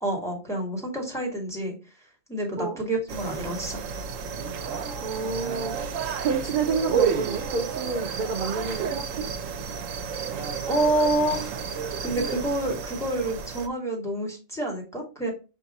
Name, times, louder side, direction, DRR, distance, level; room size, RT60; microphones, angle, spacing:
voice 1, 0.0-1.7 2.3-3.8 10.1-10.3 10.7-11.4 12.0-15.3, right 1 dB, ahead, 1.4 m, -28 dB
sound 1, 3.1-13.7, right 6 dB, 80° right, 0.9 m, -31 dB
voice 2, 5.0-5.8 6.2-9.2, right 4 dB, 55° right, 0.6 m, -29 dB
5.3 x 2.4 x 4.0 m
omnidirectional pair, 1.3 m